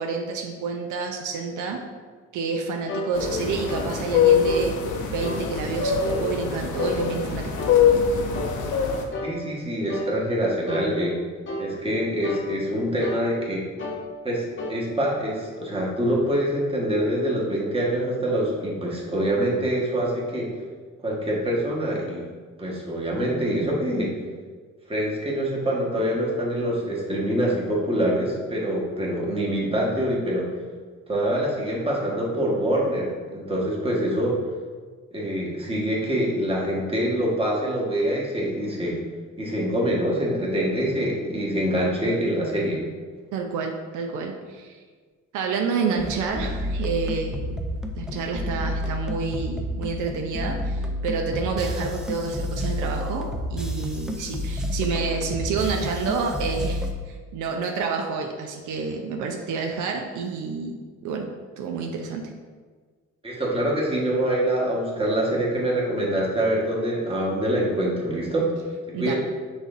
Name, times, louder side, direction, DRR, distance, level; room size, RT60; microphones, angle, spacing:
voice 1, 0.0-1.8 2.3-4.8 5.0-7.5 43.3-44.8 45.3-47.6 48.0-60.8 61.0-61.3 61.6-62.2 68.9-69.1, right 5 dB, 80° right, 3 dB, 0.5 m, -29 dB
sound 1, 2.9-3.1 3.7-3.9 4.4-4.7 5.2-5.5 6.0-6.2 6.8-7.0 7.6-7.8 8.3-8.6 9.1-9.4 9.9-10.1 10.7-10.9 11.5-11.7 12.2-12.5 13.0-13.3 13.8-14.0 14.6-14.8, left 1 dB, 40° left, 0.8 m, -32 dB
sound 2, 3.1-9.0, left 7 dB, 80° left, 0.7 m, -23 dB
voice 2, 9.2-11.2 11.6-13.6 14.2-20.5 21.0-22.3 22.6-24.1 24.9-30.5 31.1-34.4 35.1-39.0 39.4-42.8 63.2-68.5 69.0-69.1, right 1 dB, 20° right, -4 dB, 1.3 m, -25 dB
sound 3, 46.0-56.9, left 1 dB, ahead, 0.4 m, -30 dB
6.1 x 3.4 x 2.5 m, 1.5 s
cardioid pair, 90°, 30 cm